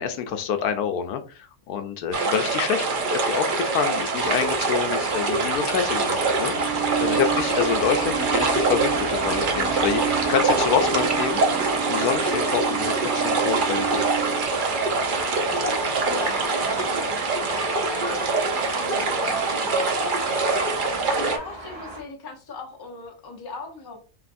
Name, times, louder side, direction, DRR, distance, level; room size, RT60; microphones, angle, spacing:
voice 1, 0.0-2.8 3.3-6.5 7.0-11.4 11.9-14.0, left 7 dB, 80° left, 8 dB, 1.1 m, -27 dB
sound 1, 2.1-21.4, right 3 dB, 50° right, 0.7 m, -24 dB
sound 2, 3.6-14.4, right 11 dB, 90° right, 1.5 m, -32 dB
sound 3, 4.1-22.0, right 1 dB, 25° right, 1.2 m, -38 dB
voice 2, 16.0-16.4 16.8-17.3 17.9-18.2 18.5-19.9 21.2-24.0, left 2 dB, 25° left, 2 dB, 0.6 m, -37 dB
5.3 x 2.5 x 2.6 m, 0.35 s
omnidirectional pair, 1.6 m